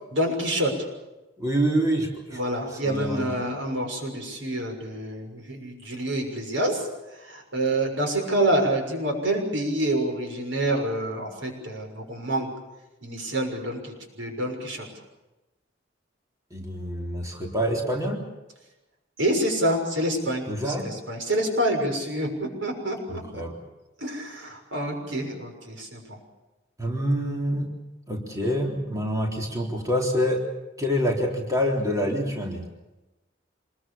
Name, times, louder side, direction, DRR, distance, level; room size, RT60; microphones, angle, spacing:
voice 1, 0.1-0.7 2.3-6.9 7.1-12.5 13.0-14.9 19.2-23.4 24.0-26.2, right 1 dB, 90° right, 3 dB, 6.5 m, -27 dB
voice 2, 1.4-2.4 2.8-3.4 16.5-18.2 20.5-20.9 23.1-23.6 26.8-27.7 28.1-30.4 30.8-32.6, equal, 20° right, 0 dB, 3.8 m, -26 dB
27.0 x 21.5 x 7.1 m, 1.0 s
head